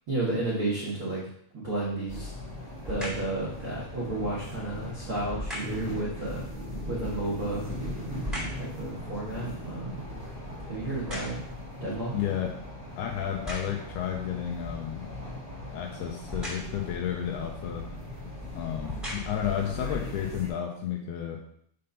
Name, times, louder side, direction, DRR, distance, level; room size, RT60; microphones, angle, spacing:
voice 1, 0.1-1.3 1.5-2.3 2.8-6.5 6.9-7.7 8.5-10.0 10.7-11.4 11.8-12.1, right 2 dB, 75° right, -7 dB, 1.2 m, -32 dB
sound 1, 2.1-20.5, left 1 dB, 20° right, 1.0 m, -39 dB
sound 2, 2.8-3.3 5.3-5.9 7.3-8.7 9.2-11.7 12.3-12.4 13.2-13.9 16.3-16.9 17.9-18.0 18.7-19.5 20.1-20.2, equal, ahead, 0.7 m, -38 dB
voice 2, 12.1-12.6 13.0-15.1 15.7-17.9 18.6-21.4, left 10 dB, 85° left, 2 dB, 2.4 m, -32 dB
6.8 x 3.5 x 5.4 m, 0.66 s
omnidirectional pair, 5.1 m